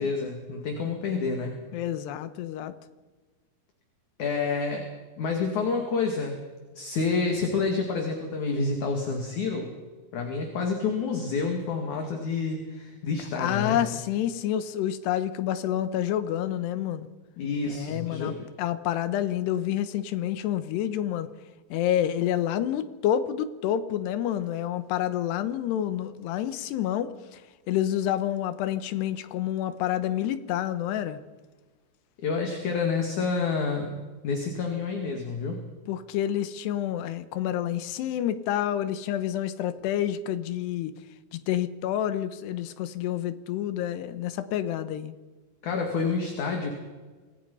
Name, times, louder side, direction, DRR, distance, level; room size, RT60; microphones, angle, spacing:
voice 1, 0.0-1.5 4.2-4.8 5.2-6.4 6.7-9.7 10.1-13.8 17.4-18.5 32.2-34.0 34.2-35.6 45.6-46.7, left 4 dB, 50° left, 3 dB, 3.3 m, -28 dB
voice 2, 1.7-2.7 13.4-17.1 17.7-21.3 21.7-27.4 27.7-31.2 35.9-40.9 41.3-45.1, left 11 dB, 80° left, 12 dB, 3.1 m, -28 dB
26.5 x 19.5 x 5.6 m, 1.3 s
omnidirectional pair, 4.9 m